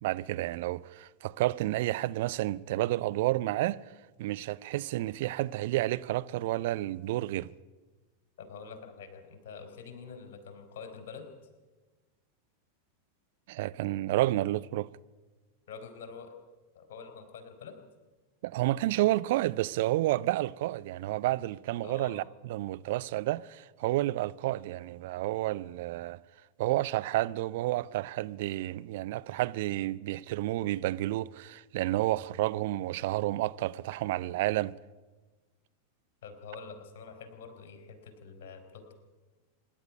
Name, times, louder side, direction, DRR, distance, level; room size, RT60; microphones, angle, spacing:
voice 1, 0.0-3.8 4.2-7.5 13.5-14.9 18.4-26.2 26.6-34.7, right 16 dB, 50° right, 0.5 m, -30 dB
voice 2, 8.4-11.3 15.7-16.3 16.7-17.8 21.8-22.2 36.2-38.9, left 5 dB, 55° left, 4.0 m, -46 dB
25.0 x 11.0 x 9.9 m
figure-of-eight pair, 90°, 0 cm